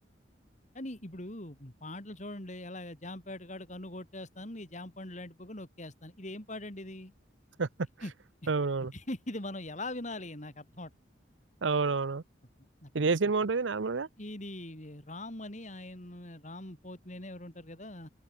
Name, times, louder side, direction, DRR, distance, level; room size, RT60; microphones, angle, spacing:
voice 1, 0.7-7.1 8.0-8.1 8.4-8.5 8.9-10.9 12.8-13.1 14.2-18.1, left 1 dB, 40° left, 4.0 m, -42 dB
voice 2, 8.5-8.9 11.6-12.2 12.9-14.1, right 4 dB, 90° right, 0.8 m, -28 dB
head